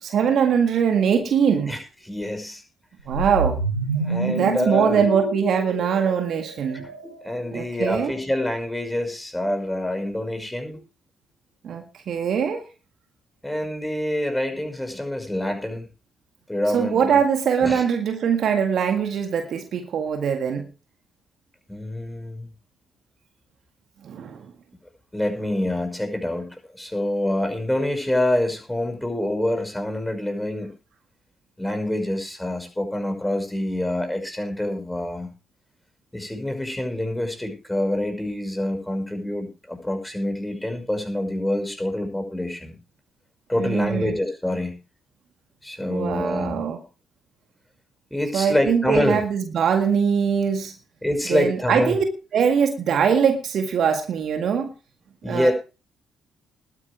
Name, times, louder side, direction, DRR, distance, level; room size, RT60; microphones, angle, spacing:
voice 1, 0.0-1.7 3.1-3.6 4.3-6.8 7.5-8.1 11.6-12.7 16.7-20.7 24.0-24.5 43.6-44.2 45.9-46.8 48.3-50.8 51.3-52.0 52.3-54.7 55.2-55.5, right 7 dB, 55° right, 6 dB, 1.8 m, -22 dB
voice 2, 1.7-2.6 4.0-5.0 6.7-6.9 7.2-10.8 13.4-15.9 16.5-17.2 17.6-17.8 21.7-22.5 25.1-30.7 31.6-35.3 36.1-42.8 43.5-44.8 45.6-46.6 48.1-49.2 51.0-52.0 55.2-55.5, left 1 dB, 10° left, 6 dB, 5.9 m, -26 dB
sound 1, 3.0-7.3, right 3 dB, 85° right, 1.3 m, -28 dB
20.5 x 9.7 x 3.5 m, 0.33 s
figure-of-eight pair, 40°, 0 cm